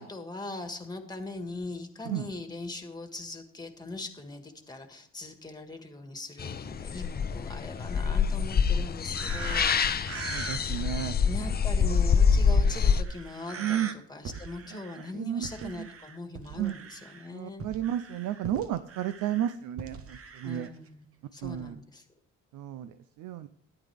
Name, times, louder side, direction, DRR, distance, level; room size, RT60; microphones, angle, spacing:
voice 1, 0.0-10.7 11.2-17.7 20.4-21.0 21.3-22.0, left 2 dB, 15° left, 6 dB, 1.7 m, -41 dB
sound 1, 6.4-13.0, left 6 dB, 30° left, 0.6 m, -25 dB
sound 2, 9.1-10.9 12.5-12.6 13.0-13.9 14.2-15.1 15.4-17.3 17.6-20.7 21.4-21.7, right 5 dB, 50° right, 1.0 m, -42 dB
voice 2, 10.3-11.2 11.8-12.0 13.6-13.9 14.7-14.8 15.1-15.9 16.6-16.8 17.3-20.7 21.4-21.8 22.5-23.5, right 11 dB, 80° right, 12 dB, 0.6 m, -33 dB
13.0 x 10.0 x 3.5 m, 0.67 s
cardioid pair, 90°, 30 cm